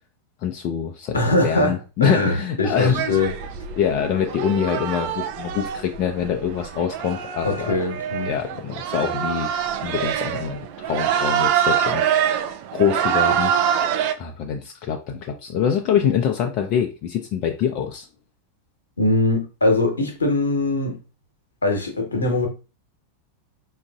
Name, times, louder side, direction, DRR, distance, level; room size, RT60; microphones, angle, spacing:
voice 1, 0.4-3.0 3.8-7.8 8.3-9.5 9.8-12.3 12.7-13.5 14.2-18.1, left 8 dB, 40° left, 0.4 m, -24 dB
voice 2, 1.1-3.3 7.4-8.3 19.0-21.0 21.6-22.5, left 2 dB, 75° left, 0.9 m, -22 dB
sound 1, 2.7-14.1, right 9 dB, 45° right, 0.4 m, -25 dB
4.6 x 2.5 x 2.3 m
figure-of-eight pair, 90°, 0 cm